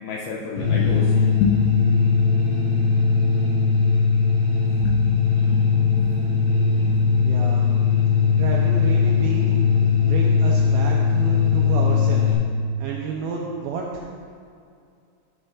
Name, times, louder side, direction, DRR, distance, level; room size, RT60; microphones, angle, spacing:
voice 1, 0.0-1.6 4.8-5.1 5.5-6.4 6.9-7.0, left 5 dB, 80° left, -3 dB, 2.2 m, -28 dB
sound 1, 0.6-12.3, left 5 dB, 35° left, 1.9 m, -19 dB
voice 2, 7.2-7.7 8.4-9.6 10.0-12.4 12.8-13.9, right 4 dB, 85° right, -2 dB, 2.2 m, -30 dB
12.5 x 7.5 x 2.5 m, 2.3 s
omnidirectional pair, 5.1 m